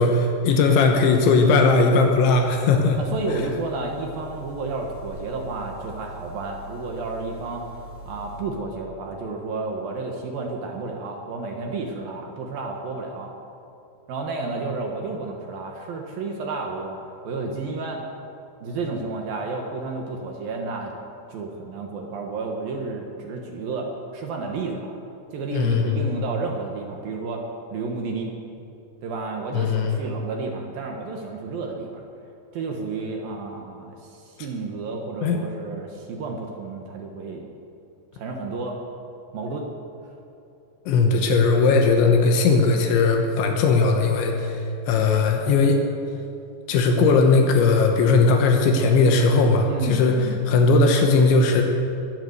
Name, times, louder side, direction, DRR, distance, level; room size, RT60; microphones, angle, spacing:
voice 1, 0.0-3.0 25.5-26.1 29.5-30.0 35.2-35.4 40.9-45.8 46.7-51.6, left 4 dB, 80° left, 3 dB, 3.4 m, -18 dB
sound 1, 2.3-8.4, equal, 60° left, 5.1 m, -42 dB
voice 2, 3.0-13.3 14.1-17.0 17.2-18.0 18.6-20.9 21.3-25.0 25.3-27.5 27.7-28.3 29.0-32.0 32.5-37.5 38.1-38.8 39.3-39.7 49.6-50.4, right 3 dB, 65° right, 2 dB, 2.5 m, -31 dB
21.5 x 8.2 x 7.9 m, 2.7 s
omnidirectional pair, 5.4 m